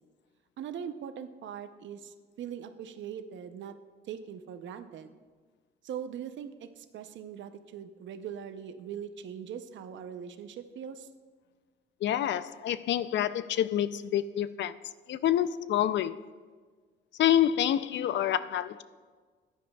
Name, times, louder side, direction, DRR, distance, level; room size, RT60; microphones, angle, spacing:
voice 1, 0.6-3.8 4.1-5.2 5.8-11.1, right 8 dB, 70° right, 10 dB, 0.7 m, -41 dB
voice 2, 12.0-14.8 15.1-16.2 17.2-18.8, left 11 dB, 65° left, 14 dB, 0.5 m, -27 dB
14.5 x 10.0 x 2.3 m, 1.5 s
cardioid pair, 90°, 20 cm